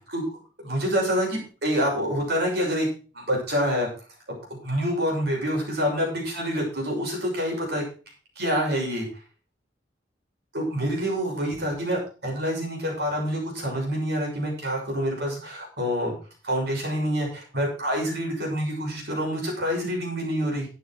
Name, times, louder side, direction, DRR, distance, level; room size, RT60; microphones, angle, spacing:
voice 1, 0.6-2.9 3.1-3.9 4.3-7.8 8.4-9.1 10.5-16.1 16.4-20.7, equal, 65° right, 0 dB, 6.5 m, -27 dB
13.0 x 8.5 x 4.7 m, 0.37 s
head